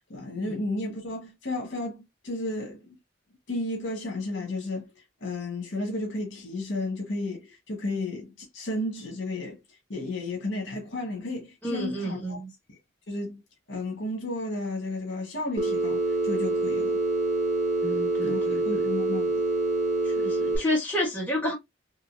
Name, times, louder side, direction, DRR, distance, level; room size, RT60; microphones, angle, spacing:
voice 1, 0.1-2.9 3.5-4.9 5.2-9.6 9.9-12.4 12.7-12.8 13.1-13.4 13.7-17.0 18.2-19.4, left 2 dB, 65° left, 1.3 m, -33 dB
voice 2, 11.6-12.5 17.8-18.9 20.0-21.5, left 1 dB, 10° left, 1.3 m, -30 dB
Telephone, 15.6-20.6, right 2 dB, 40° right, 1.6 m, -26 dB
3.7 x 2.7 x 2.6 m
head